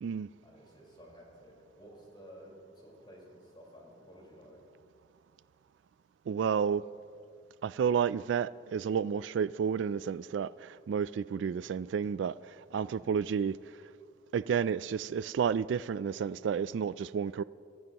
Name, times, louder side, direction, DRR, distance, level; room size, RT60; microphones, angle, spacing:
voice 1, 0.4-4.6 12.8-13.1, equal, 25° left, 4.5 m, -53 dB
voice 2, 6.3-6.8 7.6-13.6 14.3-17.4, right 7 dB, 80° right, 0.3 m, -31 dB
24.5 x 14.5 x 3.0 m
head